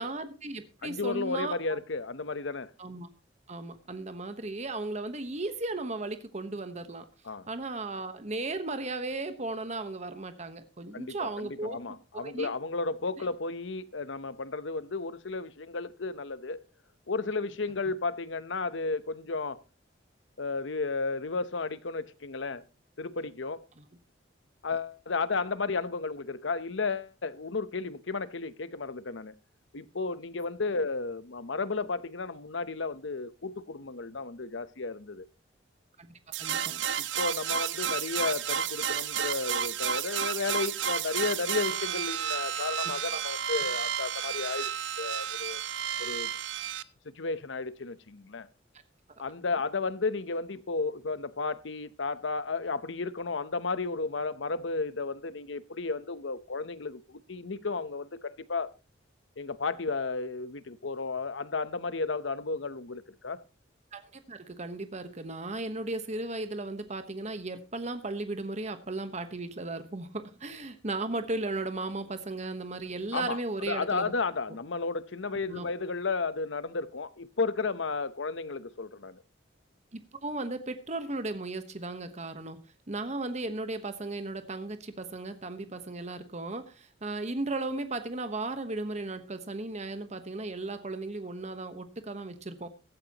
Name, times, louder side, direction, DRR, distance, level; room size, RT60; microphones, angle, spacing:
voice 1, 0.0-1.8 2.8-3.1 3.5-7.1 7.5-12.5 23.8-23.9 36.0-36.8 63.9-74.1 75.5-75.7 79.9-82.6 82.9-92.7, right 2 dB, 35° right, 1.2 m, -36 dB
voice 2, 0.8-2.7 7.2-7.5 10.9-16.6 17.1-19.6 20.4-22.6 23.0-23.6 24.6-29.3 29.7-35.2 37.0-44.7 45.0-45.6 46.0-46.3 47.0-48.5 49.2-58.7 59.4-63.4 73.1-79.2, left 4 dB, 75° left, 0.9 m, -33 dB
sound 1, 36.3-46.8, right 8 dB, 70° right, 0.6 m, -32 dB
16.0 x 13.0 x 3.0 m
head